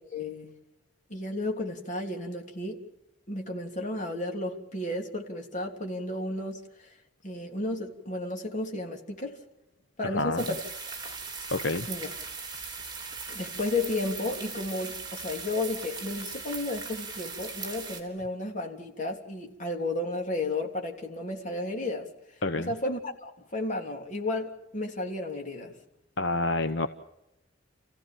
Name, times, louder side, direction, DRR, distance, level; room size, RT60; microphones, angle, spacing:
voice 1, 0.1-0.5 1.1-2.8 3.3-6.9 7.2-9.4 10.0-10.6 11.0-11.1 11.9-12.1 13.3-22.1 22.7-25.7, left 2 dB, 40° left, 2 dB, 3.4 m, -33 dB
voice 2, 10.0-10.4 11.5-11.9 22.4-22.7 26.2-26.9, left 2 dB, 70° left, 8 dB, 1.0 m, -28 dB
sound 1, 10.4-18.0, right 4 dB, 25° right, 4.0 m, -39 dB
29.5 x 16.0 x 7.5 m, 0.93 s
head